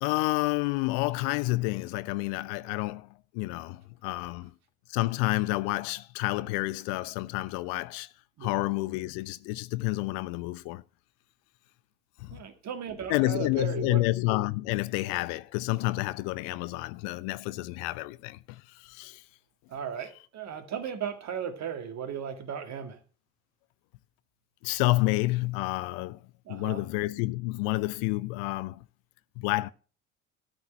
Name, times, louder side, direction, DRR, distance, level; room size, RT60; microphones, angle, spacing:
voice 1, 0.0-3.1 3.3-4.5 4.9-8.1 8.4-10.8 12.2-12.4 13.1-19.2 24.6-26.2 26.5-28.8 29.4-29.7, left 20 dB, 55° left, 0.6 m, -29 dB
voice 2, 12.3-14.0 19.7-23.0 26.5-26.8, right 8 dB, 40° right, 1.9 m, -36 dB
13.0 x 4.6 x 7.7 m
figure-of-eight pair, 55°, 40 cm